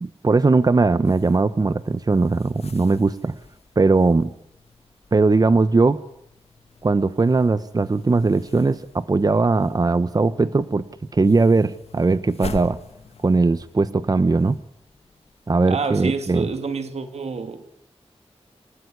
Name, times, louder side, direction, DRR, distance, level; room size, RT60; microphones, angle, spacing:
voice 1, 0.0-3.3 3.8-4.3 5.1-6.0 6.8-10.8 11.1-12.8 13.2-14.6 15.5-16.5, right 3 dB, 35° right, 1.0 m, -19 dB
sound 1, 1.0-15.5, left 4 dB, 70° left, 2.0 m, -44 dB
voice 2, 15.7-17.7, right 4 dB, 85° right, 3.1 m, -28 dB
28.0 x 17.5 x 9.9 m
wide cardioid pair, 100°, 11 cm